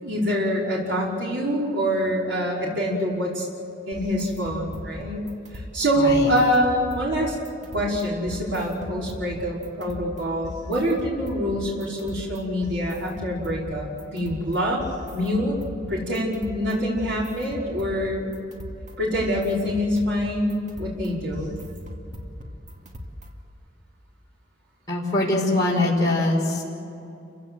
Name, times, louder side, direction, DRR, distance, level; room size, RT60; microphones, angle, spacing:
voice 1, 0.0-3.5 3.9-5.2 5.7-7.4 7.7-14.8 15.1-15.6 15.9-18.3 19.0-21.5, equal, 75° right, -4 dB, 5.2 m, -25 dB
sound 1, 3.9-23.5, left 1 dB, 40° right, 2.3 m, -39 dB
voice 2, 6.0-6.3 24.9-26.6, left 2 dB, 20° left, -5 dB, 5.3 m, -22 dB
29.5 x 16.5 x 7.9 m, 2.8 s
head